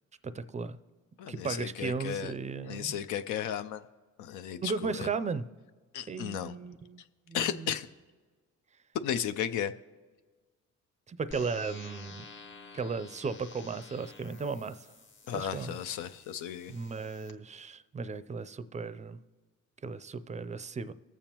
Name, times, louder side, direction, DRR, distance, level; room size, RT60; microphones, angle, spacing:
voice 1, 0.2-0.8 1.3-3.0 4.6-5.5 6.1-7.7 11.1-12.3 12.7-14.9 15.3-15.8 16.7-19.2 19.8-20.9, right 4 dB, 25° right, 0.4 m, -36 dB
voice 2, 1.2-2.3 2.6-3.8 4.2-5.1 5.9-6.5 7.3-7.9 9.0-9.7 15.3-16.7, left 9 dB, 80° left, 0.5 m, -34 dB
sound 1, 11.3-17.3, left 4 dB, 40° left, 0.9 m, -51 dB
20.0 x 7.1 x 2.9 m
cardioid pair, 90°, 30 cm